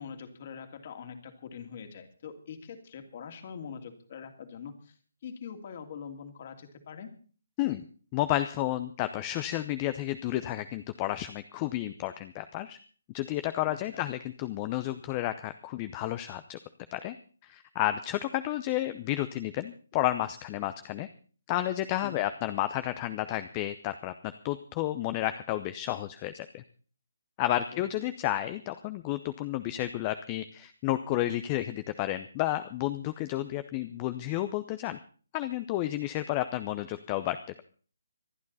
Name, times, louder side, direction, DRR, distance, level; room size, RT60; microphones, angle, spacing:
voice 1, 0.0-5.0 5.2-7.1 13.7-14.0 22.0-22.2 27.5-27.9, left 6 dB, 45° left, 6 dB, 2.7 m, -43 dB
voice 2, 8.1-12.8 13.1-16.6 16.9-17.1 17.4-21.1 21.5-24.1 24.4-26.6 27.4-35.0 35.3-37.6, left 14 dB, 25° left, 11 dB, 0.7 m, -31 dB
26.0 x 9.7 x 4.2 m, 0.42 s
figure-of-eight pair, 145°, 0 cm